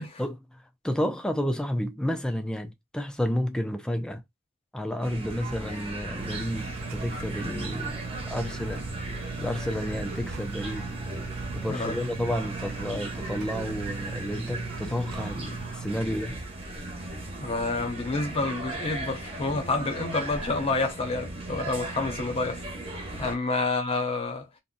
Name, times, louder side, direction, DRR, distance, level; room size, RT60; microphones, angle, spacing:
voice 1, 0.0-4.2 4.7-8.9 9.4-10.9 11.5-16.4 23.2-23.4, equal, 5° left, 0.4 m, -31 dB
sound 1, 5.0-23.3, right 2 dB, 25° right, 0.7 m, -37 dB
sound 2, 6.2-15.9, right 5 dB, 70° right, 0.4 m, -39 dB
voice 2, 11.7-12.0 17.4-22.6 23.2-24.5, left 3 dB, 25° left, 0.7 m, -28 dB
2.6 x 2.1 x 3.8 m
head